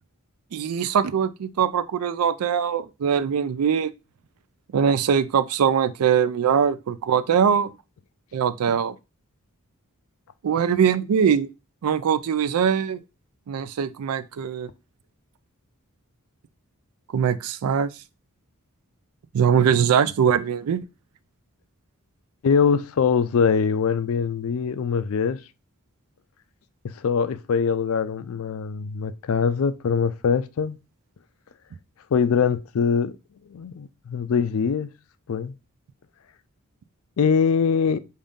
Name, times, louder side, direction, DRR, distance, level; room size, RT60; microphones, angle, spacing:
voice 1, 0.5-3.9 4.7-7.7 8.3-9.0 10.4-11.5 11.8-13.0 13.5-14.7 17.1-17.9 19.3-20.9, right 7 dB, 80° right, 0.4 m, -22 dB
voice 2, 22.4-25.4 26.8-30.8 32.1-33.2 33.5-34.9 35.3-35.5 37.2-38.0, left 6 dB, 65° left, 0.4 m, -23 dB
5.2 x 2.6 x 3.5 m
head